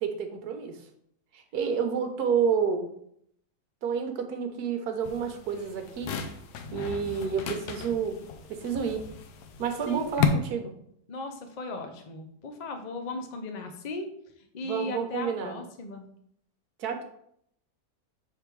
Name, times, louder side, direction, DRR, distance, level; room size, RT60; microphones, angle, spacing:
voice 1, 0.0-0.8 1.3-2.9 3.8-6.1 6.7-8.2 8.5-9.0 9.6-10.7 14.6-15.6 16.8-17.0, right 6 dB, 70° right, 6 dB, 1.3 m, -29 dB
sound 1, 5.0-10.3, left 9 dB, 75° left, 1.2 m, -34 dB
voice 2, 11.1-14.1 14.5-16.1, left 2 dB, 45° left, 5 dB, 0.5 m, -37 dB
6.8 x 3.6 x 4.6 m, 0.70 s
omnidirectional pair, 1.8 m